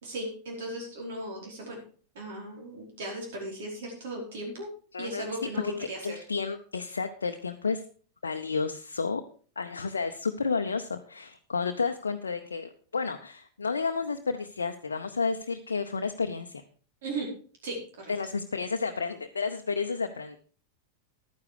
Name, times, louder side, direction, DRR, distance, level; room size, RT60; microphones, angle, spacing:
voice 1, 0.0-1.8 2.1-4.7 5.0-6.1 17.0-17.3 17.6-18.1, right 1 dB, 60° right, 0 dB, 4.9 m, -37 dB
voice 2, 4.9-5.3 5.6-7.8 8.2-9.2 9.6-16.6 18.1-20.4, left 4 dB, 75° left, 5 dB, 0.7 m, -31 dB
11.5 x 9.6 x 4.9 m, 0.41 s
figure-of-eight pair, 90°, 0 cm